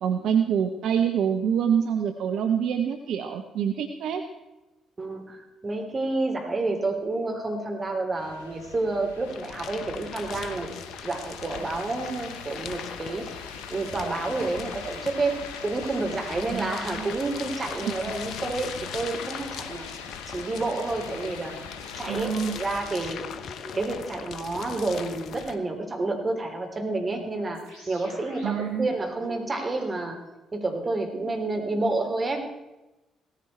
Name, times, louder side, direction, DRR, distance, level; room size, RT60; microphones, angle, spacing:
voice 1, 0.0-4.2 16.5-16.7 17.0-17.2 17.8-17.9 22.1-22.6 28.4-28.9, right 8 dB, 60° right, 6 dB, 0.9 m, -26 dB
voice 2, 5.0-10.7 11.0-19.9 20.3-21.6 22.0-23.3 23.7-30.2 30.5-32.5, right 2 dB, 30° right, 3 dB, 3.5 m, -29 dB
sound 1, 8.2-23.0, left 6 dB, 75° left, 1.4 m, -43 dB
sound 2, 9.3-25.6, left 7 dB, 60° left, 0.9 m, -39 dB
sound 3, 22.6-24.0 24.9-25.0 27.2-30.1, left 1 dB, 85° right, 5.4 m, -47 dB
17.0 x 15.0 x 4.4 m, 1.0 s
figure-of-eight pair, 45°, 0 cm